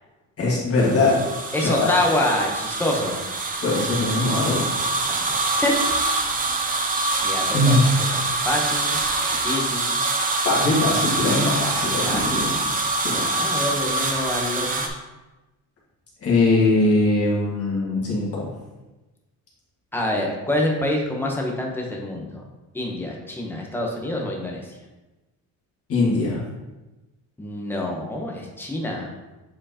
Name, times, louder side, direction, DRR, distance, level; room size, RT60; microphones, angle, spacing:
voice 1, 0.4-1.9 3.6-4.7 7.5-7.8 10.4-12.7 13.0-13.3 16.2-18.5 25.9-26.4, left 2 dB, 40° left, -6 dB, 1.8 m, -21 dB
sound 1, 0.8-14.9, right 2 dB, 25° right, 0.6 m, -25 dB
voice 2, 1.5-3.3 5.1-5.7 7.2-9.0 9.4-10.0 12.0-12.6 13.1-14.9 19.9-22.5 22.7-24.8 27.4-29.1, left 1 dB, 5° left, -1 dB, 0.9 m, -27 dB
7.7 x 4.5 x 2.9 m, 1.1 s
cardioid pair, 160°, 35 cm